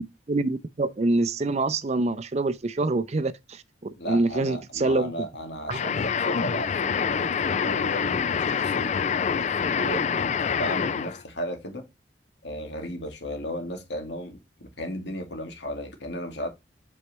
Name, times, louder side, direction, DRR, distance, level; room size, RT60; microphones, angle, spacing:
voice 1, 0.3-3.6 4.0-5.1 5.7-5.8, right 2 dB, 35° right, 0.5 m, -25 dB
voice 2, 4.0-9.0 9.3-11.9 12.4-16.5, equal, 75° left, 2.2 m, -35 dB
sound 1, 5.7-11.2, left 6 dB, 40° left, 0.3 m, -26 dB
8.2 x 4.6 x 3.1 m
head